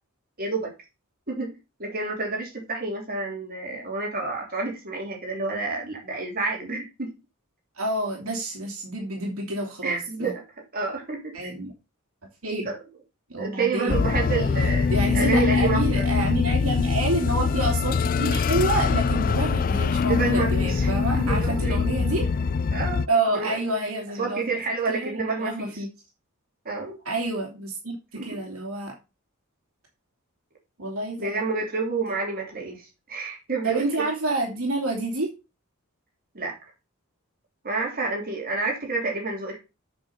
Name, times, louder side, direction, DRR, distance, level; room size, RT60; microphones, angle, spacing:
voice 1, 0.4-0.7 1.3-1.5 1.8-7.1 9.8-10.4 10.7-11.5 12.6-12.8 13.4-16.1 20.1-21.8 22.7-23.0 23.3-23.6 24.2-25.8 26.6-27.0 28.1-28.3 31.2-33.9 36.3-36.5 37.6-39.6, right 3 dB, 40° right, -1 dB, 3.1 m, -29 dB
voice 2, 7.8-10.3 11.3-11.7 12.4-12.7 13.3-14.0 14.9-22.3 23.1-24.6 24.9-25.9 27.0-28.9 30.8-31.4 33.6-35.3, right 2 dB, 70° right, 0 dB, 2.5 m, -28 dB
sound 1, 13.9-23.1, left 5 dB, 40° left, 0.3 m, -23 dB
7.5 x 5.5 x 5.6 m, 0.28 s
head